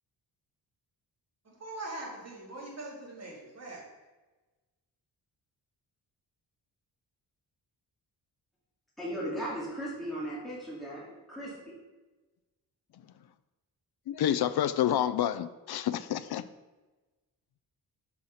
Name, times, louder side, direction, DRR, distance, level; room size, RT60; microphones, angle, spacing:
voice 1, 1.4-3.8, right 2 dB, 40° right, -3 dB, 2.6 m, -42 dB
voice 2, 9.0-11.6, equal, ahead, -7 dB, 2.6 m, -37 dB
voice 3, 14.1-16.4, left 10 dB, 65° left, 14 dB, 0.5 m, -28 dB
6.4 x 5.7 x 5.6 m, 1.2 s
cardioid pair, 105°, 41 cm